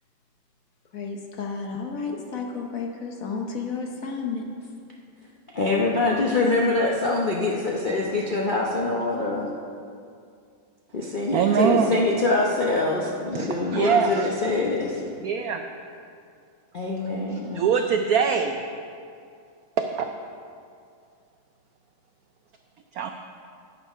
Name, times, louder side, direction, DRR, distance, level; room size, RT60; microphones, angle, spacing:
voice 1, 0.9-4.5, left 5 dB, 55° left, 1.1 m, -32 dB
voice 2, 5.5-9.5 10.9-15.0 16.7-17.7, left 2 dB, 75° left, 0.4 m, -24 dB
voice 3, 11.3-12.0 13.3-14.3 15.2-15.6 17.3-18.6 19.8-20.1 22.9-23.1, right 6 dB, 85° right, 0.8 m, -23 dB
9.8 x 6.9 x 5.5 m
omnidirectional pair, 2.1 m